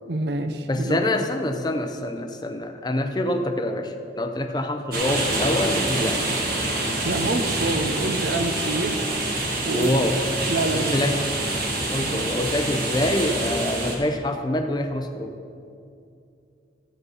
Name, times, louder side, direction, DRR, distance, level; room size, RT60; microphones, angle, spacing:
voice 1, 0.1-1.0 7.0-9.0 9.6-9.9 10.5-11.0 12.0-12.3, right 2 dB, 70° right, 7 dB, 0.7 m, -27 dB
voice 2, 0.7-6.2 9.7-10.2 10.7-11.3 11.9-15.4, left 1 dB, 25° left, 7 dB, 0.6 m, -25 dB
sound 1, 4.9-13.9, right 2 dB, 55° right, 1.8 m, -26 dB
14.0 x 8.0 x 4.1 m, 2.5 s
head